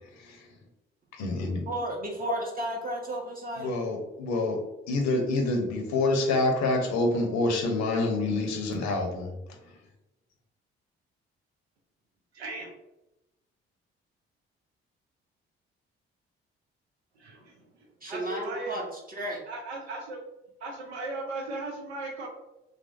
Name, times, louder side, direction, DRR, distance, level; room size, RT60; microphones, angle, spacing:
voice 1, 0.1-0.5 1.1-1.6 3.6-9.3, left 2 dB, 60° left, 3 dB, 0.7 m, -27 dB
voice 2, 1.5-3.7 18.0-19.4, right 1 dB, 25° right, -1 dB, 0.6 m, -34 dB
voice 3, 12.3-12.7 17.2-17.6 18.0-18.8 19.5-20.2 20.6-22.3, right 2 dB, 85° right, 0 dB, 0.6 m, -37 dB
3.2 x 2.6 x 2.4 m, 0.94 s
figure-of-eight pair, 45°, 32 cm